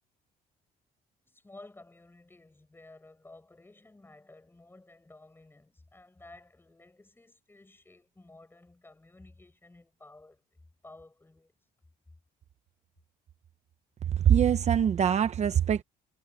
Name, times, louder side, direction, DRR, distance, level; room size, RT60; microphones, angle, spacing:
voice 1, 1.3-10.4 10.8-11.5, left 2 dB, 15° left, 5.9 m, -54 dB
voice 2, 14.2-15.8, right 9 dB, 40° right, 0.9 m, -23 dB
cardioid pair, 110°, 17 cm